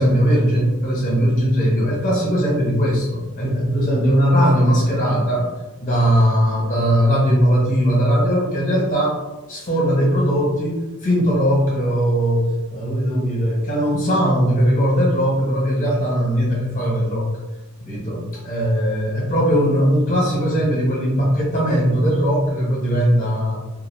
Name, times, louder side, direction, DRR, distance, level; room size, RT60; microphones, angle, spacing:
voice 1, 0.0-5.5 5.8-9.2 9.5-17.3 17.8-23.6, equal, 40° left, -4 dB, 1.0 m, -19 dB
2.5 x 2.1 x 3.2 m, 1.1 s
head